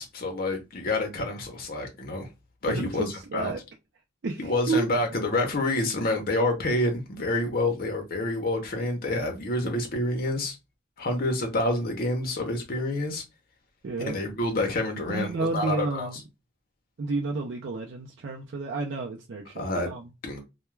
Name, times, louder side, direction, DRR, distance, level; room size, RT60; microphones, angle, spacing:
voice 1, 0.0-2.3 2.6-3.5 4.4-10.6 11.0-13.2 14.0-16.1 19.6-19.9 20.2-20.4, left 2 dB, 50° left, 0.6 m, -28 dB
voice 2, 2.7-3.6 4.2-4.9 13.8-14.2 15.1-16.2 17.0-20.1, right 3 dB, 65° right, 0.5 m, -31 dB
2.3 x 2.1 x 3.1 m
head